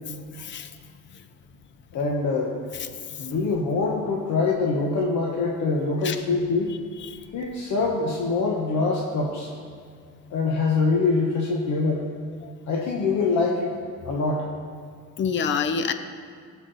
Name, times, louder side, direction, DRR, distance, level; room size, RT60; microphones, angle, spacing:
voice 1, 0.4-0.7 6.0-6.2 7.1-7.2 12.4-12.5 15.2-15.9, left 6 dB, 35° left, 10 dB, 0.6 m, -26 dB
voice 2, 1.9-2.6 3.2-6.7 7.3-9.5 10.3-12.1 12.7-13.7 14.0-14.5, left 3 dB, 55° left, -1 dB, 1.2 m, -24 dB
18.5 x 6.2 x 4.1 m, 2.2 s
cardioid pair, 175°, 33 cm